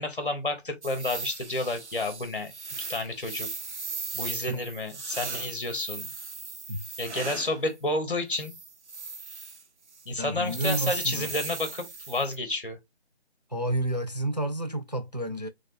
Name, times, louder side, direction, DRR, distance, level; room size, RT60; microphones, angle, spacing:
voice 1, 0.0-2.5 2.9-3.5 4.1-6.1 7.0-8.6 10.1-12.8, left 2 dB, 50° left, 2.0 m, -30 dB
sound 1, 0.8-7.6 8.3-9.6 9.9-10.0 10.5-12.4, right 4 dB, 85° right, 1.1 m, -37 dB
voice 2, 10.2-11.3 13.5-15.5, right 1 dB, 40° right, 0.4 m, -30 dB
5.1 x 3.9 x 2.5 m
figure-of-eight pair, 175°, 34 cm